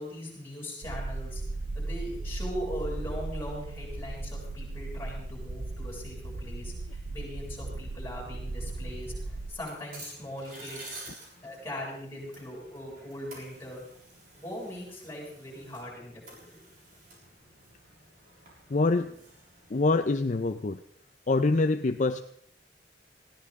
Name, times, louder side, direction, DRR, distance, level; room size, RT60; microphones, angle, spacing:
voice 1, 0.0-1.4 1.7-11.0 11.4-13.8 14.3-16.6, equal, 15° left, -3 dB, 7.2 m, -40 dB
sound 1, 0.8-9.5, right 2 dB, 80° right, 0.8 m, -37 dB
sound 2, 8.4-20.0, right 2 dB, 50° right, 6.7 m, -51 dB
voice 2, 18.7-19.1 19.7-20.8 21.3-22.2, left 3 dB, 45° left, 9 dB, 0.5 m, -25 dB
20.0 x 16.0 x 3.7 m, 0.68 s
head